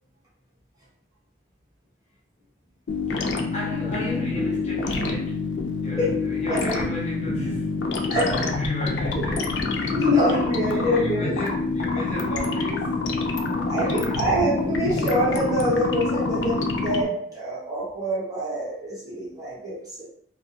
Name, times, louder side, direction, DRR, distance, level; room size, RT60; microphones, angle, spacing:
sound 1, 2.9-17.0, left 3 dB, 90° left, 0.4 m, -26 dB
voice 1, 3.1-10.2 10.6-13.0 13.5-14.5, equal, 40° left, 0.6 m, -35 dB
voice 2, 9.9-11.4 13.7-20.0, equal, 20° right, 1.0 m, -25 dB
2.3 x 2.1 x 2.6 m
head